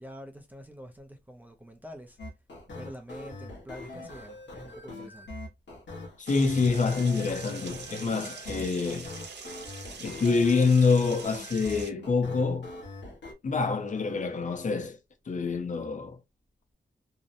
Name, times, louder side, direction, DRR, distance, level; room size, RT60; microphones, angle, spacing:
voice 1, 0.0-2.2 2.7-5.3, equal, 10° right, 0.4 m, -46 dB
sound 1, 2.2-13.3, left 2 dB, 80° left, 0.9 m, -43 dB
voice 2, 6.2-9.1 10.0-12.7 13.4-15.0 15.3-16.2, left 4 dB, 45° left, 0.5 m, -26 dB
sound 2, 6.3-11.9, right 5 dB, 75° right, 0.7 m, -44 dB
2.7 x 2.0 x 2.4 m
wide cardioid pair, 125°, 18 cm